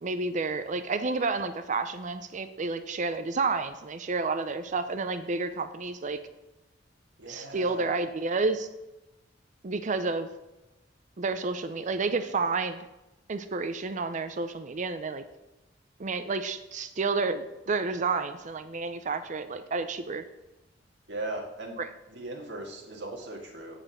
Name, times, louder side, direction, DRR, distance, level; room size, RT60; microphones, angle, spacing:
voice 1, 0.0-6.2 7.3-8.7 9.6-10.3 11.2-12.9 13.3-15.2 16.0-20.2 21.8-21.9, right 4 dB, 40° right, 10 dB, 0.5 m, -30 dB
voice 2, 7.2-8.0 21.1-21.8 22.1-23.8, right 2 dB, 65° right, 0 dB, 1.9 m, -38 dB
8.8 x 5.0 x 6.3 m, 0.98 s
head